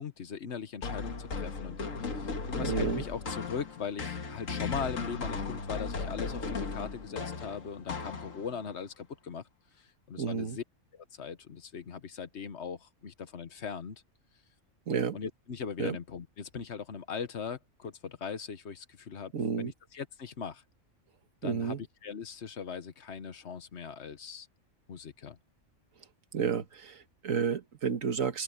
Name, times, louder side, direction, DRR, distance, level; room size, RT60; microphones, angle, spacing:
voice 1, 0.0-9.4 9.8-10.6 10.9-14.0 15.1-19.3 19.6-20.6 21.4-24.5 24.9-25.4, left 6 dB, 60° left, 1.4 m, -40 dB
sound 1, 0.8-8.6, left 4 dB, 80° left, 2.2 m, -36 dB
voice 2, 2.4-3.0 10.2-10.6 14.9-15.2 15.8-16.0 19.3-19.7 21.4-21.8 26.3-28.4, right 6 dB, 85° right, 1.8 m, -31 dB
open air
omnidirectional pair, 1.3 m